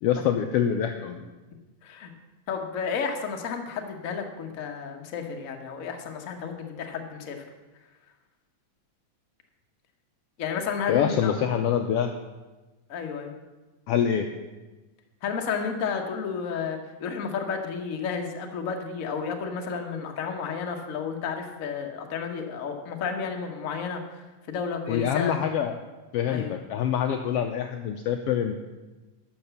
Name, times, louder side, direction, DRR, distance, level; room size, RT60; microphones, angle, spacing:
voice 1, 0.0-1.3 10.9-12.1 13.9-14.3 24.9-25.8 26.1-28.5, left 9 dB, 85° left, 6 dB, 1.3 m, -25 dB
voice 2, 2.5-7.4 10.4-11.3 12.9-13.3 15.2-25.3 26.3-26.5, left 6 dB, 65° left, 3 dB, 0.8 m, -32 dB
11.5 x 6.6 x 7.0 m, 1.2 s
omnidirectional pair, 3.3 m